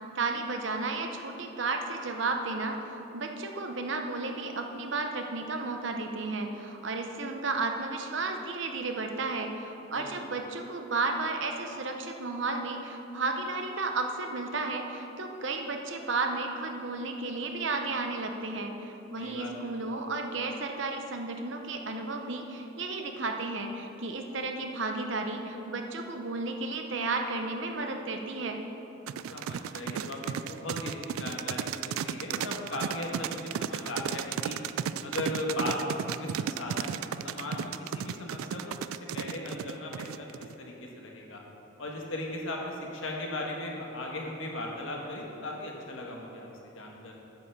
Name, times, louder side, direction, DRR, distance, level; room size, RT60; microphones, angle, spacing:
voice 1, 0.1-28.6, right 3 dB, 60° right, 4 dB, 0.8 m, -33 dB
voice 2, 9.9-10.3 19.2-19.7 29.3-34.6 35.0-38.7 39.1-41.4 41.8-46.5 46.7-47.1, left 1 dB, 75° left, -1 dB, 1.4 m, -37 dB
sound 1, 29.1-40.5, right 8 dB, 90° right, 0.3 m, -34 dB
9.1 x 5.7 x 6.6 m, 3.0 s
head